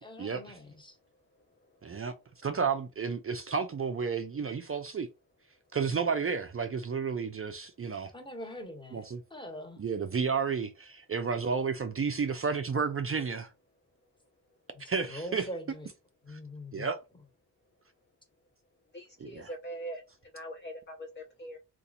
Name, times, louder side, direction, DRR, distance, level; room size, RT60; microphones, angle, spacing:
voice 1, 0.0-1.0 8.1-9.8 14.7-15.9 16.2-16.9, equal, 10° left, 1.3 m, -43 dB
voice 2, 1.8-2.1 2.4-5.1 5.7-8.1 8.9-9.2 9.8-13.5 14.9-15.4 16.3-16.4 16.7-17.0 19.2-19.5, right 5 dB, 35° right, 0.5 m, -31 dB
voice 3, 18.9-20.0 20.3-21.6, right 1 dB, 30° left, 0.6 m, -42 dB
2.7 x 2.5 x 4.0 m
cardioid pair, 60°, 40 cm